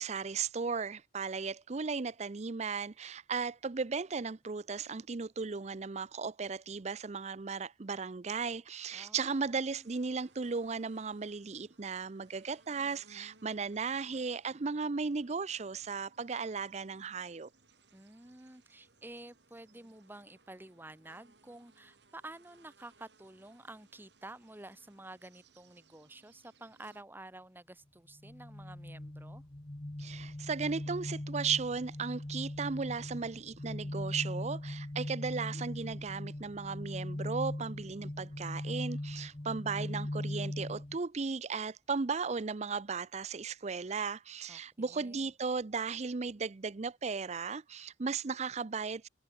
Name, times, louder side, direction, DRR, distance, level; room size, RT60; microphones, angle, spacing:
voice 1, 0.0-17.5 30.0-49.1, right 5 dB, 40° right, 0.6 m, -36 dB
voice 2, 8.9-9.9 17.9-29.4 44.5-45.3, right 2 dB, 10° right, 1.2 m, -51 dB
sound 1, 9.6-27.0, right 3 dB, 80° right, 6.1 m, -65 dB
sound 2, 28.2-41.0, left 1 dB, 30° left, 1.0 m, -40 dB
head